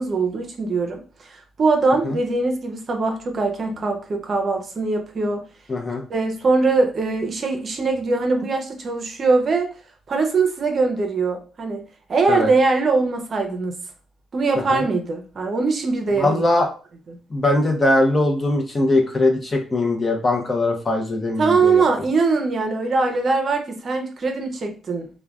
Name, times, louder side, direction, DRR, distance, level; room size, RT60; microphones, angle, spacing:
voice 1, 0.0-5.5 6.1-9.7 10.1-11.8 12.1-13.7 14.3-16.4 17.1-17.2 21.4-25.1, right 3 dB, 45° right, 3 dB, 0.6 m, -22 dB
voice 2, 5.7-6.0 12.3-12.5 14.7-14.8 16.2-16.7 17.3-21.8, left 2 dB, 30° left, 3 dB, 0.7 m, -20 dB
3.2 x 2.2 x 2.3 m, 0.37 s
cardioid pair, 90°, 0 cm